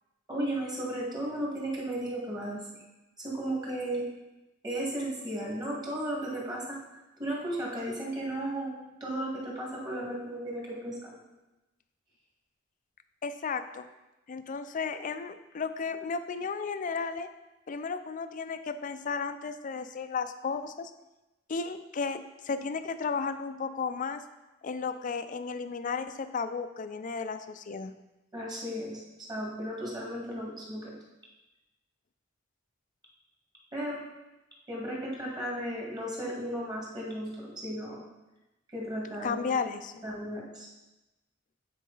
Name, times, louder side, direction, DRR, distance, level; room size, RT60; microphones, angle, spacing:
voice 1, 0.3-2.6 3.2-4.1 4.6-6.8 7.2-11.2 28.3-29.0 29.3-30.9 33.7-34.0 34.7-38.0 38.7-39.5 40.0-40.7, right 1 dB, 20° right, -3 dB, 1.9 m, -35 dB
voice 2, 13.2-13.9 14.3-17.3 17.7-20.9 21.5-24.2 24.6-27.9 39.2-40.0, left 5 dB, 40° left, 10 dB, 0.4 m, -34 dB
9.2 x 4.7 x 3.9 m, 1.0 s
head